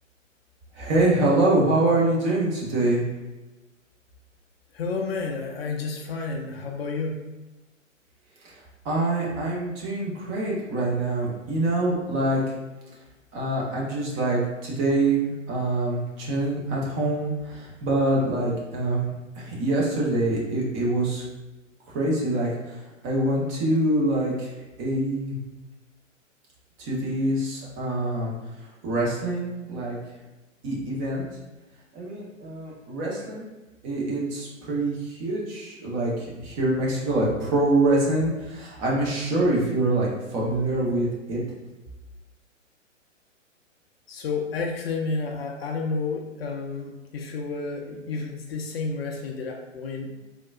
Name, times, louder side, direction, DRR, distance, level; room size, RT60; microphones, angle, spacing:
voice 1, 0.7-3.0 8.4-8.6 8.8-12.4 13.3-21.2 21.9-24.5 24.8-25.4 26.8-28.3 28.8-30.0 30.6-31.2 31.9-33.5 33.8-41.4, right 2 dB, 25° right, -4 dB, 0.7 m, -25 dB
voice 2, 4.7-7.2 44.1-50.2, left 4 dB, 50° left, 1 dB, 0.5 m, -31 dB
3.6 x 2.3 x 2.3 m, 1.1 s
figure-of-eight pair, 115°, 39 cm